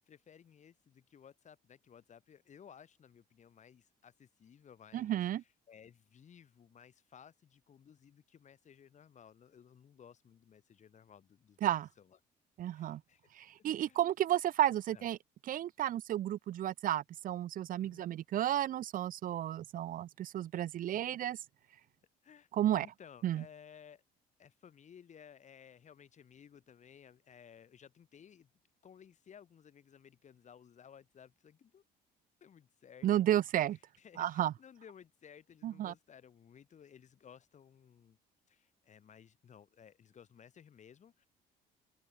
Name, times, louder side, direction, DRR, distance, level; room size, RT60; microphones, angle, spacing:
voice 1, 0.0-11.6 12.0-12.2 12.7-13.3 13.8-14.0 14.9-15.1 17.8-18.0 20.8-20.9 22.2-22.5 22.8-24.0 24.4-28.5 28.8-31.8 32.4-33.3 34.0-38.2 38.5-41.3, left 8 dB, 45° left, 7.7 m, -58 dB
voice 2, 4.9-5.4 11.6-11.9 12.6-13.0 13.4-15.2 15.5-21.4 22.5-22.9 23.2-23.4 33.0-33.8 34.2-34.5 35.6-35.9, right 12 dB, 55° right, 0.7 m, -32 dB
open air
cardioid pair, 110°, 17 cm